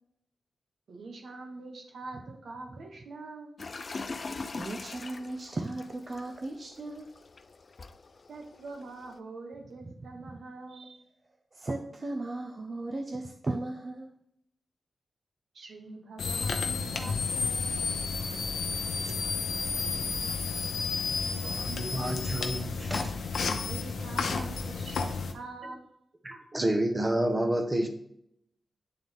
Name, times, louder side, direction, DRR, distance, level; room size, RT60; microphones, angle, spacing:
voice 1, 0.9-3.5 8.3-11.1 15.5-17.9 23.6-25.9, right 3 dB, 75° right, 1.4 m, -44 dB
sound 1, 3.6-9.2, left 3 dB, 50° left, 0.5 m, -42 dB
voice 2, 4.5-7.1 11.5-14.1, right 2 dB, 40° right, 0.7 m, -36 dB
sound 2, 16.2-25.3, left 4 dB, 80° left, 0.7 m, -31 dB
voice 3, 21.4-23.1 26.2-27.9, right 1 dB, 25° right, 1.2 m, -29 dB
9.2 x 3.9 x 3.6 m
cardioid pair, 65°, 0 cm